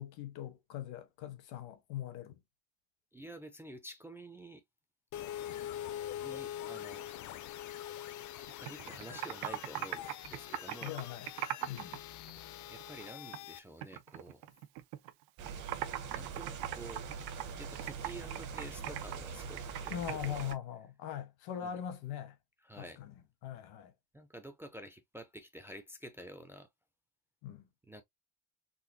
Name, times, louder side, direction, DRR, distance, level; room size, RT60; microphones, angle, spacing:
voice 1, 0.0-2.4 10.8-11.3 11.7-12.0 19.9-22.4 22.7-23.1 23.4-23.9 27.4-27.6, left 10 dB, 80° left, 1.1 m, -41 dB
voice 2, 3.1-4.6 6.2-7.1 8.5-10.0 10.3-11.0 12.7-14.4 16.1-17.1 17.6-20.5 21.6-21.8 22.6-23.0 24.1-26.7 27.9-28.0, right 1 dB, 5° right, 0.4 m, -49 dB
sound 1, 5.1-13.6, left 12 dB, 50° left, 0.5 m, -44 dB
Computer keyboard, 8.4-12.0 12.3-13.5 13.8-15.1 15.4-20.6, right 13 dB, 85° right, 0.7 m, -40 dB
sound 2, 15.4-20.5, right 6 dB, 50° right, 1.0 m, -43 dB
4.0 x 2.3 x 2.6 m
cardioid pair, 130°, 38 cm